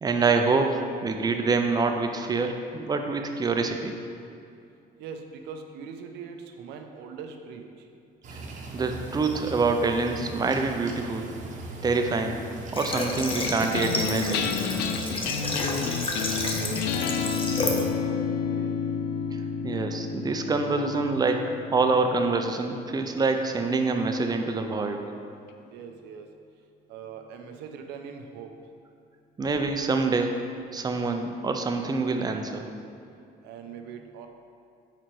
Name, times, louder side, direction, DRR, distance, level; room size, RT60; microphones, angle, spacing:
voice 1, 0.0-3.9 8.7-11.3 11.8-12.4 12.7-14.5 19.3-25.0 29.4-30.3 30.7-32.7, right 3 dB, 25° right, 5 dB, 0.5 m, -26 dB
voice 2, 5.0-7.6 15.9-18.7 25.7-26.3 26.9-28.5 33.4-34.3, right 6 dB, 90° right, 4 dB, 0.6 m, -42 dB
sound 1, 8.2-17.4, right 2 dB, 45° right, 0.9 m, -40 dB
Water / Water tap faucet, 12.7-17.9, left 2 dB, 30° left, 0.8 m, -31 dB
sound 2, 13.3-23.9, left 6 dB, 90° left, 0.4 m, -31 dB
5.0 x 4.4 x 4.5 m, 2.5 s
cardioid pair, 110°, 17 cm